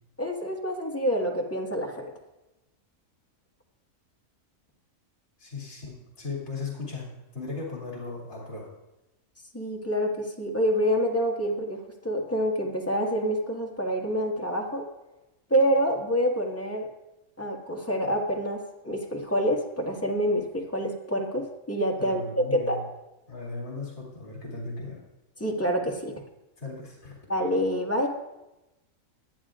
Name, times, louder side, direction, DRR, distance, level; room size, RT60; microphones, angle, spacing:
voice 1, 0.2-2.1 9.5-14.8 15.5-16.9 17.4-22.8 25.4-26.1 27.3-28.1, equal, 10° left, -1 dB, 1.6 m, -27 dB
voice 2, 5.4-8.7 22.0-22.8 23.3-25.0 26.6-27.2, left 3 dB, 55° left, -4 dB, 2.9 m, -37 dB
18.5 x 10.5 x 2.5 m, 0.98 s
omnidirectional pair, 1.4 m